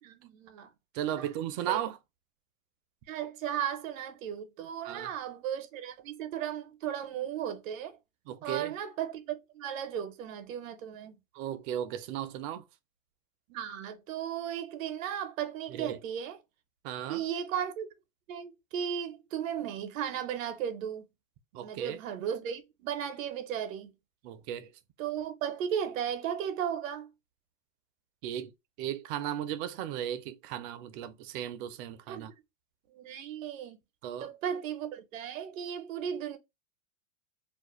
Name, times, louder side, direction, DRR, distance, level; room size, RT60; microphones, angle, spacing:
voice 1, 0.0-0.7 1.2-1.3 1.7-1.8 3.1-8.0 8.4-11.1 13.5-16.4 17.1-17.9 18.3-21.0 21.6-23.9 25.0-27.1 32.1-32.3 32.9-33.8 34.2-36.4, right 9 dB, 80° right, 0.7 m, -35 dB
voice 2, 0.9-2.0 4.8-5.1 8.3-8.7 11.3-12.7 15.7-16.0 16.8-17.2 21.5-22.0 24.2-24.7 28.2-28.5 28.8-32.3 34.0-34.3, right 11 dB, 45° right, 0.4 m, -36 dB
2.4 x 2.1 x 2.9 m
supercardioid pair, 125°, 39 cm